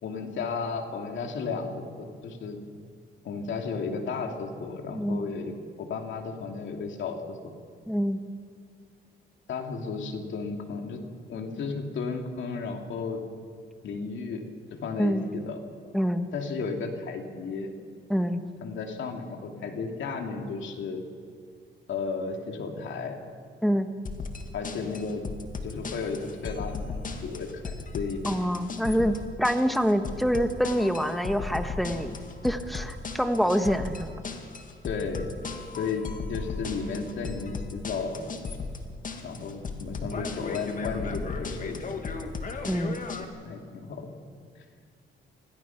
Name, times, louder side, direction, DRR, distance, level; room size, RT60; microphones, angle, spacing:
voice 1, 0.0-2.6 3.2-5.5 5.8-7.5 9.5-11.0 11.3-13.2 13.8-14.4 14.7-15.6 16.3-17.7 18.6-21.0 21.9-23.2 24.5-25.2 25.6-28.2 34.8-35.3 35.8-38.3 39.2-41.9 43.2-44.1 44.6-44.7, left 4 dB, 70° left, 3 dB, 2.7 m, -34 dB
voice 2, 4.9-5.3 7.9-8.2 15.0-15.3 15.9-16.3 18.1-18.4 23.6-23.9 28.2-34.1 42.7-43.0, equal, ahead, 7 dB, 1.4 m, -26 dB
sound 1, 24.0-43.2, left 4 dB, 40° left, 2.0 m, -36 dB
26.0 x 17.0 x 5.9 m, 2.1 s
cardioid pair, 90°, 20 cm